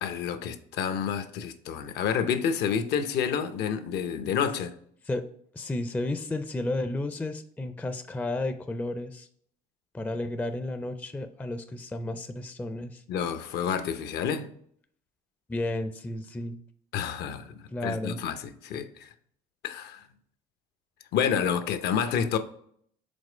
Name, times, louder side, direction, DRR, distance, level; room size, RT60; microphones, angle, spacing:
voice 1, 0.0-4.7 13.1-14.5 16.9-18.4 18.6-19.1 19.6-20.0 21.1-22.4, left 7 dB, 75° left, 0.7 m, -29 dB
voice 2, 5.5-9.3 9.9-13.0 15.5-16.6 17.7-18.2, left 2 dB, 10° left, 0.4 m, -32 dB
5.2 x 3.7 x 4.9 m
cardioid pair, 110°, 17 cm